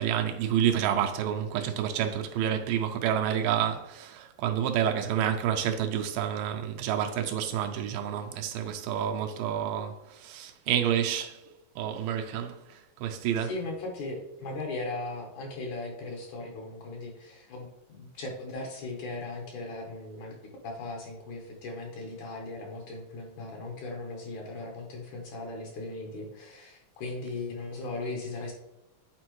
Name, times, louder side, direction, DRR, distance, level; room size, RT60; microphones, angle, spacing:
voice 1, 0.0-11.4 11.8-13.5, right 9 dB, 80° right, 2.2 m, -29 dB
voice 2, 13.4-20.4 20.6-28.5, left 2 dB, 65° left, 2.2 m, -38 dB
8.4 x 4.2 x 3.1 m
omnidirectional pair, 4.1 m